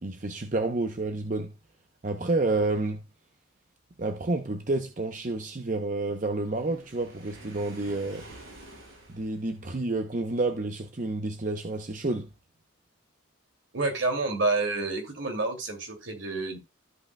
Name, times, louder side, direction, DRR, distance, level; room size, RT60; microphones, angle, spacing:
voice 1, 0.0-1.5 2.0-3.0 4.0-8.2 9.1-12.3, right 2 dB, 40° right, 0.7 m, -29 dB
Waves surf, 6.3-9.8, right 1 dB, 90° right, 6.3 m, -49 dB
voice 2, 13.7-16.6, right 3 dB, 70° right, 2.5 m, -28 dB
14.0 x 5.5 x 2.2 m
head